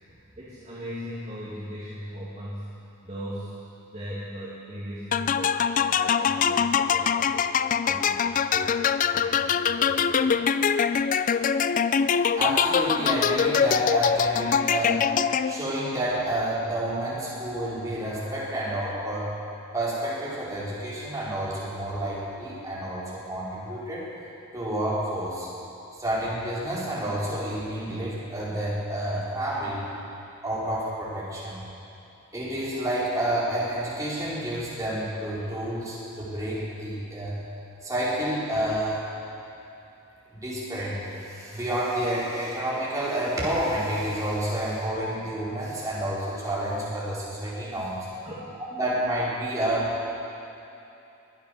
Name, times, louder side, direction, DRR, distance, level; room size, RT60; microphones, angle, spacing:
voice 1, 0.4-2.6 3.0-3.5 3.9-10.6 48.2-48.5, equal, 30° right, -9 dB, 2.4 m, -38 dB
sound 1, 5.1-15.8, left 7 dB, 40° left, 0.4 m, -23 dB
voice 2, 12.4-15.1 15.5-19.3 19.7-24.1 24.5-25.5 26.0-29.9 30.4-31.6 32.3-37.4 37.8-39.0 40.3-41.0 41.3-48.1 48.8-49.9, right 1 dB, 15° right, -8 dB, 4.6 m, -29 dB
22.5 x 8.9 x 6.7 m, 2.9 s
head